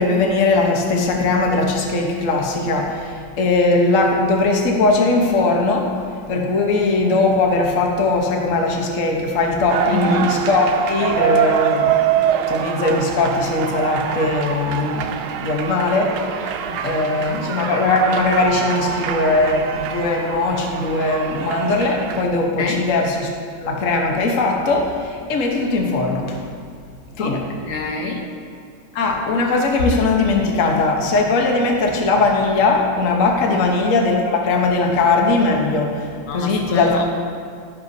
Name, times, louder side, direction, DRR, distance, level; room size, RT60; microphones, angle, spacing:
voice 1, 0.0-2.9 3.4-5.9 6.3-11.9 12.5-15.0 15.4-16.1 16.4-16.5 16.8-23.3 23.6-24.9 25.3-26.2 27.2-27.4 28.9-35.9 36.3-36.9, left 3 dB, 45° left, 1 dB, 1.2 m, -19 dB
sound 1, 9.7-22.2, right 9 dB, 90° right, 1.4 m, -24 dB
voice 2, 9.9-10.4 16.7-17.4 22.6-22.9 27.2-28.2 33.5-33.8 36.2-37.0, left 4 dB, 75° left, 1 dB, 1.7 m, -26 dB
12.5 x 10.0 x 2.7 m, 2.1 s
omnidirectional pair, 2.2 m